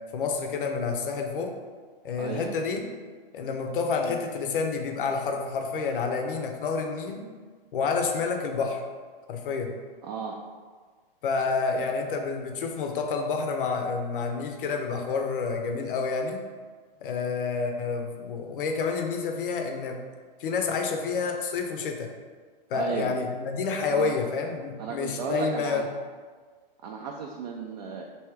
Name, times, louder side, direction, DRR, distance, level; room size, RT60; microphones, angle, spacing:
voice 1, 0.1-1.5 2.0-2.8 3.3-7.2 7.7-8.8 9.3-9.7 11.2-16.4 17.0-20.0 20.4-22.1 22.7-25.8, left 4 dB, 65° left, 4 dB, 0.7 m, -29 dB
voice 2, 2.2-2.5 10.0-10.4 22.7-23.1 23.9-24.1 24.8-25.8 26.8-28.0, right 5 dB, 45° right, 0 dB, 0.5 m, -34 dB
3.4 x 2.8 x 4.6 m, 1.5 s
hypercardioid pair, 130°, 29 cm